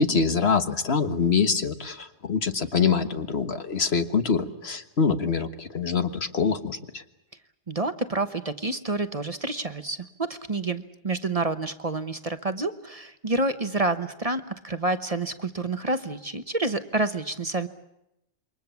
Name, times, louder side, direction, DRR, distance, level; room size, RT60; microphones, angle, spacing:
voice 1, 0.0-7.0, left 5 dB, 65° left, 9 dB, 1.7 m, -25 dB
voice 2, 7.7-17.7, right 2 dB, 35° right, 10 dB, 1.1 m, -28 dB
28.0 x 24.0 x 7.1 m, 0.85 s
omnidirectional pair, 1.2 m